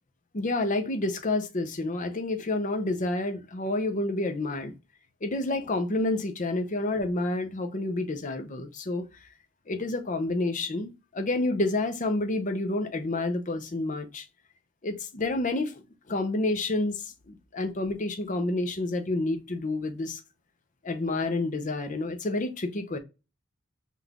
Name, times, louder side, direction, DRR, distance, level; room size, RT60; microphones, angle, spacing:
voice 1, 0.3-4.7 5.2-9.0 9.7-14.2 14.8-20.2 20.8-23.0, left 2 dB, 35° left, 0.7 m, -29 dB
5.7 x 2.4 x 3.5 m
head